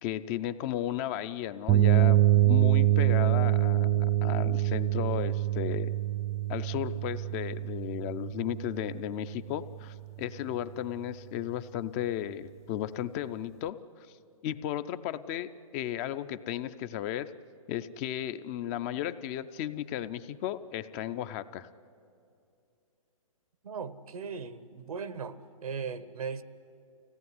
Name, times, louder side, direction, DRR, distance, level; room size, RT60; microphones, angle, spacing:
voice 1, 0.0-2.2 2.4-5.9 6.5-13.8 14.4-17.3 17.7-21.7, left 11 dB, 25° left, 13 dB, 0.5 m, -34 dB
sound 1, 1.7-9.4, right 13 dB, 15° right, 0.6 m, -25 dB
voice 2, 23.6-26.4, right 5 dB, 85° right, 14 dB, 1.2 m, -38 dB
24.5 x 17.0 x 9.5 m, 2.5 s
hypercardioid pair, 150°, 18 cm